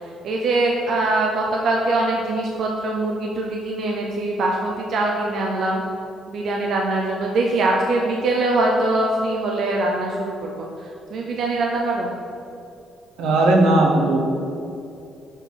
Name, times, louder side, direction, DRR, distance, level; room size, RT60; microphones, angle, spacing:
voice 1, 0.2-5.8 6.3-10.7 11.1-12.1, right 2 dB, 50° right, -1 dB, 0.6 m, -22 dB
voice 2, 13.2-14.2, right 2 dB, 80° right, 1 dB, 1.1 m, -16 dB
6.9 x 4.2 x 5.8 m, 2.6 s
cardioid pair, 180°, 0 cm